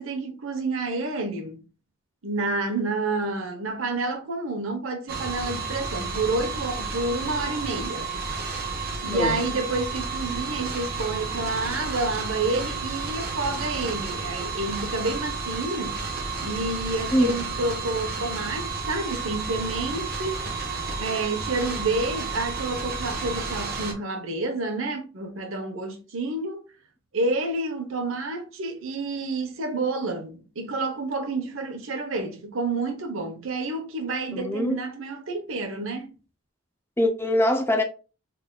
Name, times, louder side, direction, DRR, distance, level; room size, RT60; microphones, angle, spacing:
voice 1, 0.0-1.6 2.2-8.1 9.0-16.0 16.4-20.4 21.0-26.6 27.1-36.1, right 2 dB, 80° right, 1.0 m, -29 dB
sound 1, 5.1-23.9, right 4 dB, 50° right, 1.0 m, -31 dB
voice 2, 34.3-34.8 37.0-37.8, equal, 10° left, 0.5 m, -23 dB
3.9 x 3.4 x 2.3 m
head